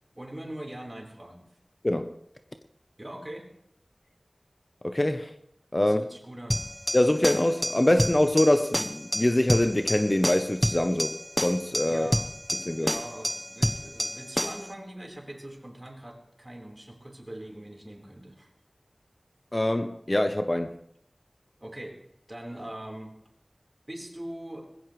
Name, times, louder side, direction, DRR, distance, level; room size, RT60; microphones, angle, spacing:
voice 1, 0.1-1.5 3.0-3.5 5.8-6.7 11.8-12.2 12.8-18.5 21.6-22.0 22.3-23.1 23.9-24.7, right 1 dB, 30° right, 4.2 m, -41 dB
voice 2, 1.8-2.1 4.8-5.3 5.7-6.0 6.9-12.1 12.6-13.0 19.5-20.8, left 1 dB, 35° left, 0.9 m, -24 dB
sound 1, 6.5-14.7, equal, 5° left, 1.0 m, -29 dB
20.5 x 15.5 x 3.3 m
wide cardioid pair, 45°, 0 cm